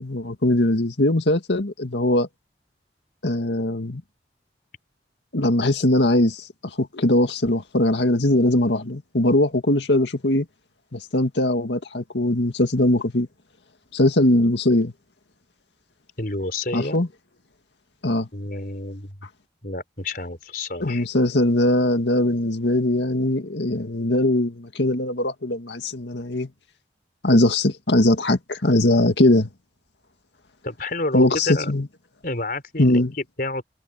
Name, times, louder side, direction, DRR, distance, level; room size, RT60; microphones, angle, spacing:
voice 1, 0.0-2.3 3.2-4.0 5.3-10.4 10.9-13.3 13.9-14.9 16.7-17.1 18.0-18.3 20.8-26.5 27.2-29.5 31.1-31.9 32.8-33.1, left 1 dB, 85° left, 2.0 m, -20 dB
voice 2, 16.2-17.0 18.3-19.2 19.6-21.0 30.6-31.7 32.2-33.6, left 2 dB, 55° left, 4.8 m, -29 dB
head